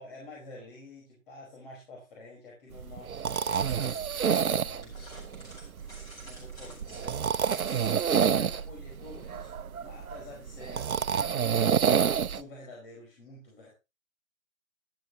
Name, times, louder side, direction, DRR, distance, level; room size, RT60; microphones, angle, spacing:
voice 1, 0.0-5.2 6.2-7.3 7.7-13.7, left 2 dB, 40° left, -2 dB, 5.1 m, -49 dB
sound 1, 2.7-12.4, right 7 dB, 90° right, 0.7 m, -28 dB
sound 2, 3.3-8.6, equal, 10° left, 5.1 m, -50 dB
12.5 x 12.5 x 3.0 m, 0.26 s
figure-of-eight pair, 150°, 41 cm